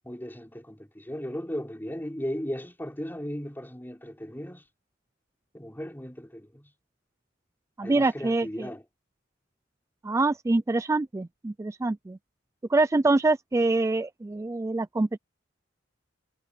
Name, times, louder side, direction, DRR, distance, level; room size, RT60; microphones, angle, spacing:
voice 1, 0.0-4.7 5.5-6.7 7.8-8.8, equal, 10° left, 4.2 m, -36 dB
voice 2, 7.8-8.7 10.0-12.2 12.7-15.2, right 2 dB, 15° right, 0.3 m, -25 dB
head